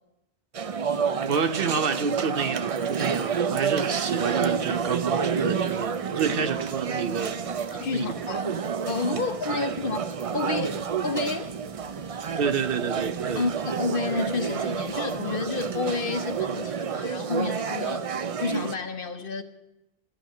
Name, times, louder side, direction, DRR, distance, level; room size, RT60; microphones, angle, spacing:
sound 1, 0.5-18.8, right 6 dB, 45° right, 0.5 m, -29 dB
voice 1, 1.2-7.4 7.9-8.1 9.1-9.2 9.8-10.0 12.4-13.5, right 6 dB, 60° right, 0.9 m, -29 dB
sound 2, 3.9-16.8, right 7 dB, 85° right, 1.1 m, -48 dB
voice 2, 7.7-10.0 10.3-11.5 13.3-19.4, left 4 dB, 55° left, 1.1 m, -30 dB
13.5 x 8.8 x 9.9 m
omnidirectional pair, 1.1 m